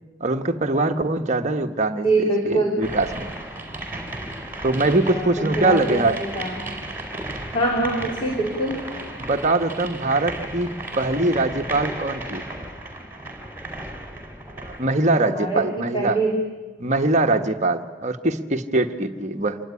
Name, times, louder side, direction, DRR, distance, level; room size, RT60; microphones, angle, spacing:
voice 1, 0.2-3.3 4.6-6.2 9.2-12.4 14.6-16.2 16.8-19.6, right 2 dB, 35° right, 5 dB, 1.3 m, -22 dB
voice 2, 2.0-2.9 5.1-6.5 7.5-8.8 15.3-15.7 15.9-16.4, right 2 dB, 25° left, 0 dB, 3.1 m, -24 dB
sound 1, 2.8-14.9, right 1 dB, 10° right, 4.2 m, -34 dB
26.0 x 20.0 x 9.8 m, 1.4 s
head